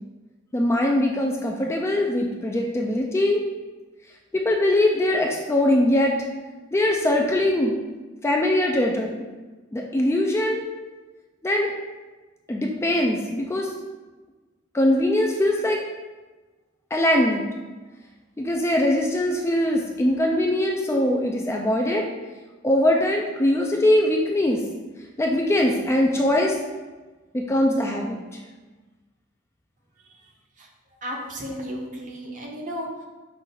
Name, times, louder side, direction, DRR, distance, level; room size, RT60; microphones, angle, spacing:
voice 1, 0.5-3.4 4.3-6.1 6.7-7.7 8.2-9.2 9.7-10.7 11.4-11.7 12.5-13.7 14.7-15.8 16.9-17.5 18.4-22.0 22.6-24.6 25.2-26.6 27.3-28.2, left 1 dB, 15° left, 0 dB, 0.3 m, -21 dB
voice 2, 31.0-33.0, equal, 40° right, 0 dB, 0.7 m, -34 dB
5.6 x 2.4 x 3.9 m, 1.3 s
head